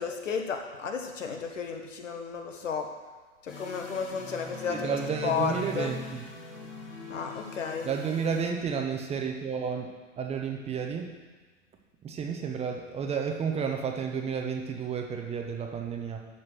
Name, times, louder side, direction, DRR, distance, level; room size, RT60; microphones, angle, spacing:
voice 1, 0.0-2.9 3.4-5.0 5.2-5.9 7.1-7.9, left 6 dB, 75° left, 4 dB, 1.5 m, -33 dB
sound 1, 3.5-8.5, left 2 dB, 30° left, 2.0 m, -41 dB
voice 2, 4.7-6.2 7.8-11.1 12.0-16.3, right 6 dB, 15° right, 2 dB, 0.9 m, -32 dB
12.0 x 4.1 x 6.3 m, 1.4 s
figure-of-eight pair, 110°, 39 cm